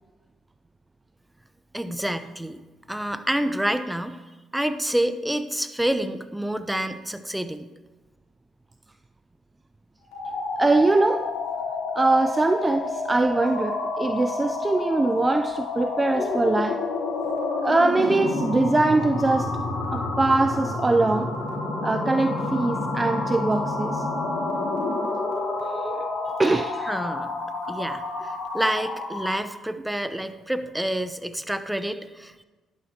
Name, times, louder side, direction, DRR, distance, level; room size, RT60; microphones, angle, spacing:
voice 1, 1.7-2.6 2.9-4.2 4.5-7.7 26.9-27.3 27.7-32.4, right 1 dB, 5° right, 0.8 m, -28 dB
sound 1, 10.0-29.4, left 3 dB, 85° left, 3.3 m, -29 dB
voice 2, 10.6-11.4 11.9-16.8 17.6-19.6 19.9-21.3 21.8-24.1 25.7-26.0 26.4-26.9, right 2 dB, 25° right, 0.4 m, -22 dB
12.0 x 11.5 x 2.9 m
supercardioid pair, 65°, 0 cm